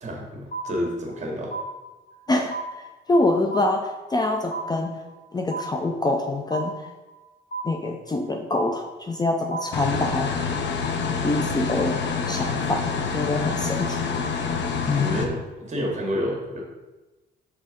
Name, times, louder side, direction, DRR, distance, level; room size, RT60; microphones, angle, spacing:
voice 1, 0.0-1.5 14.9-16.6, equal, 35° right, 0 dB, 1.8 m, -29 dB
sound 1, 0.5-1.2 1.5-2.2 2.5-3.2 3.5-4.2 4.5-5.2 5.5-6.2 6.5-7.2 7.5-8.2 8.5-9.2 9.5-10.2, right 3 dB, 40° left, 1.1 m, -34 dB
voice 2, 3.1-5.0 5.3-6.7 7.6-10.3 11.2-12.0 12.3-12.9 13.1-14.0 14.9-15.2, left 2 dB, 20° left, 3 dB, 0.5 m, -25 dB
sound 2, 9.7-15.3, left 5 dB, 65° left, 0.8 m, -27 dB
5.5 x 3.6 x 5.2 m, 1.1 s
cardioid pair, 90°, 20 cm